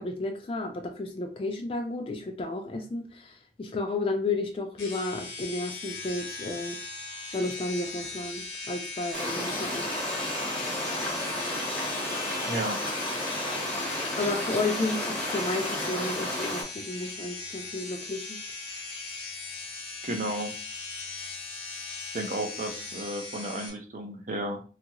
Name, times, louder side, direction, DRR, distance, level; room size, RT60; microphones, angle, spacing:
voice 1, 0.0-6.8 7.3-9.9 14.2-18.4, left 2 dB, 30° left, 3 dB, 0.3 m, -32 dB
sound 1, 4.8-23.7, left 3 dB, 65° left, 1.0 m, -39 dB
sound 2, 9.1-16.6, left 1 dB, 5° left, 0.8 m, -32 dB
voice 2, 12.5-12.8 20.0-20.5 22.1-24.6, right 1 dB, 40° right, 4 dB, 0.6 m, -33 dB
2.8 x 2.4 x 2.9 m, 0.37 s
head